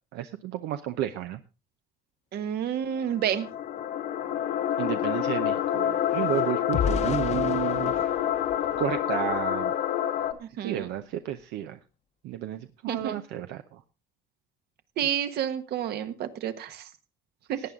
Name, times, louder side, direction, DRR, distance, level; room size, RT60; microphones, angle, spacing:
voice 1, 0.1-1.4 4.8-8.1 8.8-9.7 10.6-11.8 12.2-13.8, right 12 dB, 90° right, 8 dB, 0.8 m, -32 dB
voice 2, 2.3-3.5 10.4-10.9 12.9-13.2 15.0-16.9 17.5-17.6, right 9 dB, 70° right, 10 dB, 1.4 m, -30 dB
sound 1, 2.9-10.3, left 10 dB, 75° left, 1.7 m, -27 dB
sound 2, 3.8-3.9 4.1-9.6 10.1-10.4 10.7-10.9, left 6 dB, 40° left, 0.9 m, -36 dB
18.0 x 9.3 x 3.7 m, 0.30 s
cardioid pair, 110°, 17 cm